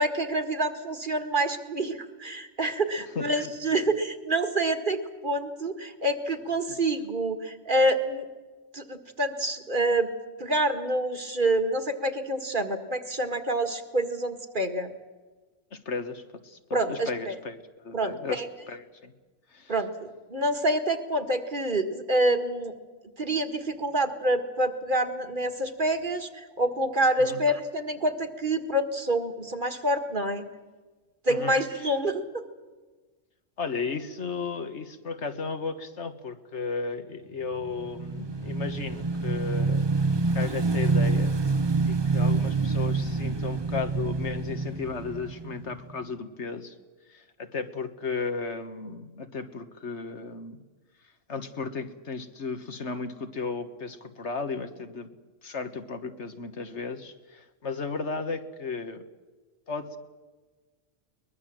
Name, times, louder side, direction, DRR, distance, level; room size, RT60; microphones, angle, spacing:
voice 1, 0.0-8.3 8.7-10.1 10.4-14.9 16.7-17.3 17.9-18.5 19.7-22.7 23.2-30.4 31.3-32.4, right 1 dB, 40° right, 6 dB, 1.9 m, -27 dB
voice 2, 3.1-3.5 6.7-6.8 15.7-19.1 19.5-19.7 27.2-27.5 31.3-31.9 33.6-39.8 40.3-41.3 41.9-46.7 47.1-50.6 51.3-55.1 55.4-59.0 59.7-60.0, left 4 dB, 65° left, 8 dB, 1.7 m, -35 dB
Motorcycle / Engine, 37.6-46.1, right 3 dB, 25° right, 0.7 m, -27 dB
22.5 x 21.0 x 7.6 m, 1.3 s
omnidirectional pair, 1.3 m